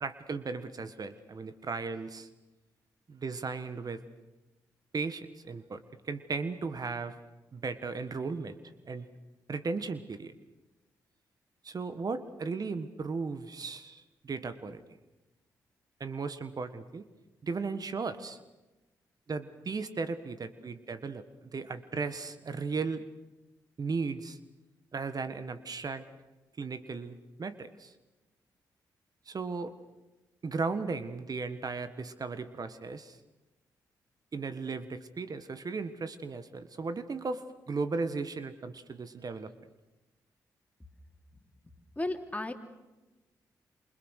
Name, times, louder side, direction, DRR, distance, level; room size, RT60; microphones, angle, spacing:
voice 1, 0.0-2.3 3.1-4.0 4.9-7.2 7.5-8.6 8.8-9.1 9.5-10.3 11.6-14.8 16.0-17.1 17.4-18.4 19.3-23.1 23.8-24.4 24.9-26.1 26.6-27.9 29.2-29.7 30.4-33.2 34.3-39.5, right 4 dB, 50° right, 11 dB, 1.5 m, -36 dB
voice 2, 42.0-42.5, left 2 dB, 20° left, 5 dB, 3.4 m, -33 dB
27.5 x 25.0 x 6.6 m, 1.1 s
supercardioid pair, 45°, 8 cm